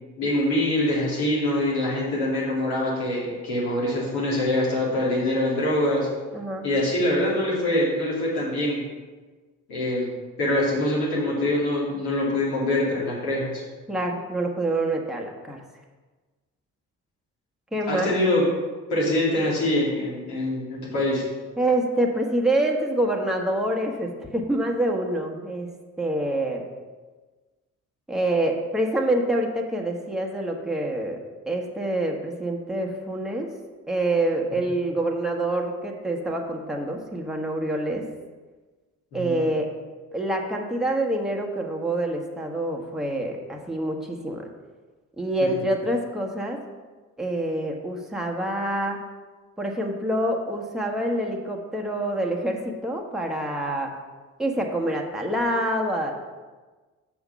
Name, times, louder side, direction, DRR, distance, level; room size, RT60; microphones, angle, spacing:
voice 1, 0.2-6.1 6.6-8.8 9.7-10.1 10.4-13.6 17.9-18.5 18.9-21.2 39.1-39.4 45.6-45.7, left 1 dB, 65° left, -6 dB, 3.0 m, -24 dB
voice 2, 6.3-6.6 13.9-15.6 17.7-18.2 21.6-25.7 26.0-26.6 28.1-31.2 31.5-33.5 33.9-38.0 39.1-39.7 40.1-44.5 45.2-46.6 47.2-49.0 49.6-53.9 54.4-56.1, right 1 dB, ahead, 0 dB, 1.3 m, -26 dB
7.0 x 5.9 x 5.7 m, 1.3 s
figure-of-eight pair, 40°, 40 cm